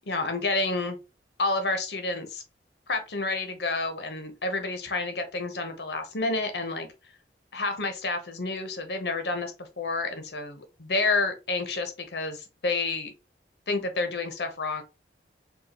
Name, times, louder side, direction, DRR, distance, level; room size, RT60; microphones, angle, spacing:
voice 1, 0.1-1.0 1.4-2.4 2.9-6.9 7.5-13.1 13.7-14.8, left 3 dB, 70° left, 7 dB, 0.9 m, -29 dB
5.4 x 2.3 x 2.9 m, 0.29 s
head